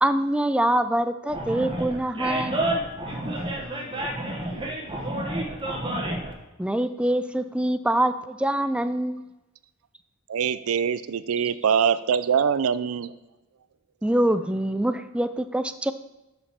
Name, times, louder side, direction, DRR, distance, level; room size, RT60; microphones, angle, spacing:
voice 1, 0.0-2.6 6.6-9.3 14.0-15.9, right 1 dB, 5° right, 11 dB, 0.3 m, -24 dB
Animal, 1.3-6.3, right 1 dB, 25° right, 1.2 m, -29 dB
voice 2, 3.0-5.6, equal, 65° left, 1 dB, 1.5 m, -45 dB
voice 3, 10.3-13.1, right 7 dB, 70° right, 15 dB, 0.4 m, -23 dB
7.1 x 5.2 x 5.8 m, 1.0 s
head